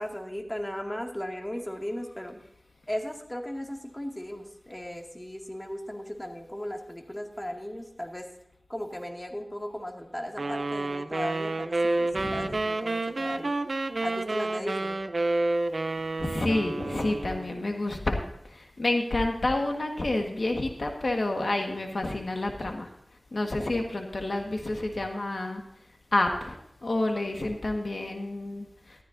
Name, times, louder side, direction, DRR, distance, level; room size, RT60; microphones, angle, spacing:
voice 1, 0.0-2.4 2.9-8.3 8.7-13.5 14.0-15.0, equal, 20° left, 2 dB, 2.1 m, -36 dB
sound 1, 10.4-17.6, right 2 dB, 70° right, 0.6 m, -29 dB
voice 2, 16.2-22.9 23.3-25.6 26.1-29.0, left 2 dB, 65° left, 3 dB, 1.5 m, -29 dB
14.0 x 13.0 x 2.6 m, 0.78 s
wide cardioid pair, 50°, 0 cm